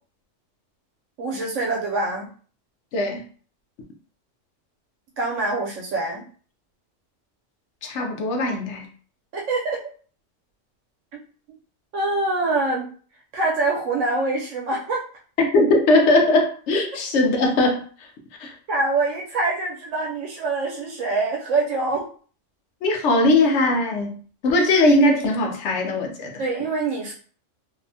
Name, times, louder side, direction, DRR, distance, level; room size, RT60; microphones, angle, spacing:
voice 1, 1.2-2.3 5.2-6.2 9.3-9.8 11.1-11.2 11.9-12.9 13.3-15.0 18.7-22.1 26.4-27.1, right 3 dB, 75° right, -2 dB, 0.9 m, -25 dB
voice 2, 2.9-3.2 7.8-8.9 15.5-17.8 18.4-18.5 22.8-26.4, left 2 dB, 70° left, 2 dB, 0.9 m, -20 dB
2.7 x 2.1 x 2.6 m, 0.43 s
omnidirectional pair, 1.3 m